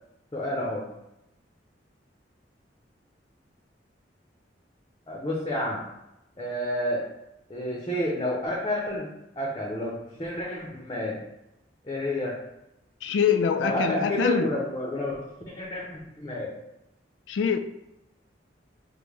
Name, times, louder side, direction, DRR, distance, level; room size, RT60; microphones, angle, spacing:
voice 1, 0.3-0.8 5.1-5.8 6.4-7.0 7.5-9.1 9.4-11.2 11.8-12.4 13.6-16.5, left 1 dB, 25° left, 0.6 m, -30 dB
voice 2, 13.0-14.5 17.3-17.6, left 6 dB, 85° left, 0.3 m, -24 dB
5.1 x 2.1 x 3.1 m
head